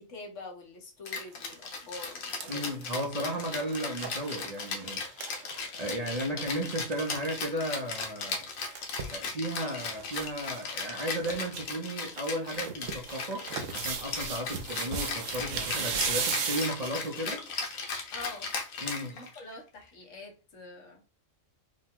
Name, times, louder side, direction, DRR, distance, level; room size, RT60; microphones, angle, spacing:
voice 1, 0.0-2.7 18.1-18.5 19.0-21.0, left 3 dB, 70° left, 2 dB, 1.4 m, -45 dB
Rattle (instrument), 1.1-19.5, left 4 dB, 90° left, 1.3 m, -37 dB
sound 1, 1.3-1.5 1.9-6.2 6.5-6.6 6.7-7.0 8.3-9.2 9.8-10.3 10.5-10.6 11.0-11.6 12.0-17.2 17.7-17.8, right 6 dB, 75° right, 1.1 m, -36 dB
voice 2, 2.5-5.0 5.8-8.5 9.1-17.4 18.8-19.2, equal, 35° right, 0 dB, 0.7 m, -34 dB
5.2 x 2.2 x 3.6 m, 0.35 s
omnidirectional pair, 1.3 m